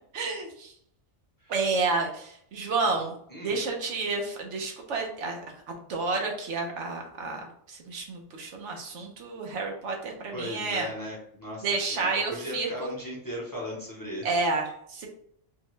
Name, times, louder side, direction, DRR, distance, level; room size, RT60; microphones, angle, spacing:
voice 1, 0.1-0.7 1.5-3.2 3.4-5.4 5.7-10.9 11.6-12.9 14.2-15.1, right 3 dB, 75° right, 1 dB, 1.1 m, -30 dB
voice 2, 3.3-3.6 10.3-14.3, left 1 dB, 20° left, -3 dB, 0.7 m, -37 dB
4.1 x 2.1 x 3.1 m, 0.67 s
omnidirectional pair, 1.2 m